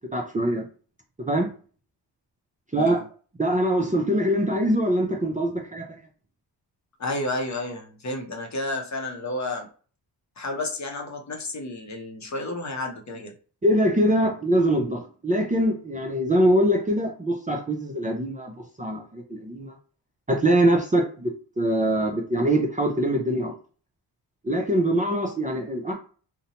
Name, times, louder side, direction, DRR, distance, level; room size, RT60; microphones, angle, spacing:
voice 1, 0.1-0.6 1.2-1.5 2.7-3.0 3.4-6.0 13.6-18.5 18.8-19.7 20.3-23.5 24.4-25.9, right 1 dB, 20° right, 2 dB, 0.5 m, -23 dB
voice 2, 2.7-3.0 7.0-9.7 10.4-13.3, left 2 dB, 40° left, 2 dB, 0.7 m, -31 dB
2.6 x 2.1 x 2.8 m, 0.40 s
cardioid pair, 75°, 43 cm